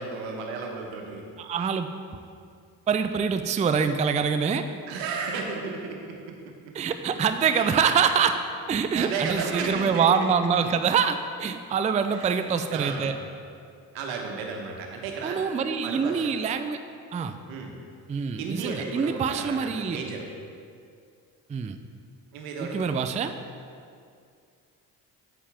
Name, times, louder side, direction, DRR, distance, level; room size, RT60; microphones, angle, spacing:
voice 1, 0.0-1.2 4.9-6.3 7.5-7.8 8.9-10.3 12.1-12.4 12.7-13.2 13.9-15.4 15.8-16.2 17.5-17.7 18.1-20.2 22.3-23.1, right 4 dB, 75° right, 1 dB, 1.2 m, -33 dB
voice 2, 1.4-1.9 2.9-4.6 6.7-8.4 8.7-13.1 15.2-16.8 17.1-17.3 18.1-20.0 21.5-21.8 22.6-23.3, right 6 dB, 15° right, 8 dB, 0.4 m, -25 dB
8.5 x 7.4 x 3.5 m, 2.3 s
hypercardioid pair, 45°, 48 cm